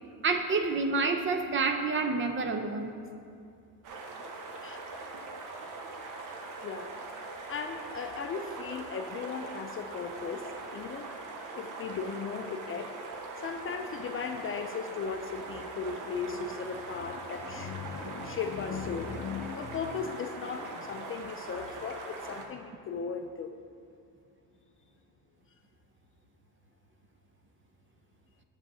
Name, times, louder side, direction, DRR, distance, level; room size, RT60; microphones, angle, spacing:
voice 1, 0.2-2.9, right 4 dB, 30° right, 5 dB, 0.7 m, -28 dB
sound 1, 3.8-22.5, right 3 dB, 55° right, 1.1 m, -42 dB
voice 2, 4.6-5.0 6.6-6.9 7.3-11.1 11.5-12.9 13.4-23.5, left 6 dB, 35° left, 6 dB, 0.4 m, -37 dB
11.5 x 7.4 x 2.7 m, 2.4 s
cardioid pair, 110°, 39 cm